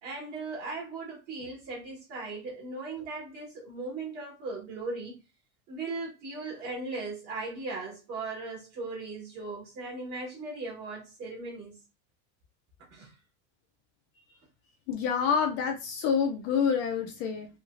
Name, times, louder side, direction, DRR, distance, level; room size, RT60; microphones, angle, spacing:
voice 1, 0.0-5.1 5.7-11.8 12.9-13.1, right 3 dB, 40° right, 1.3 m, -38 dB
voice 2, 14.9-17.5, left 6 dB, 40° left, 0.4 m, -27 dB
3.1 x 2.8 x 2.4 m
cardioid pair, 175°, 39 cm